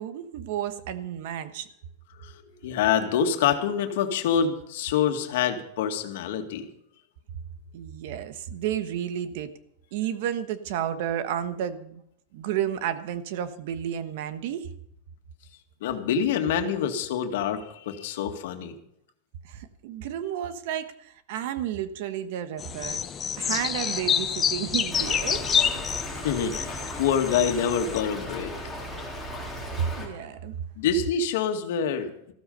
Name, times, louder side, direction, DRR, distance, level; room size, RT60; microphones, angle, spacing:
voice 1, 0.0-1.7 7.7-9.5 9.9-12.0 12.3-14.7 19.4-23.0 23.4-25.7 29.5-30.5, right 10 dB, 55° right, 12 dB, 1.2 m, -32 dB
voice 2, 2.2-6.7 15.8-18.7 26.2-28.5 30.8-32.1, left 7 dB, 65° left, 6 dB, 2.0 m, -26 dB
sound 1, 22.6-28.0, left 8 dB, 20° left, 0.7 m, -28 dB
Stream / Trickle dribble, 24.9-30.1, left 1 dB, ahead, 3.5 m, -37 dB
15.0 x 13.0 x 5.5 m, 0.74 s
supercardioid pair, 165°, 0 cm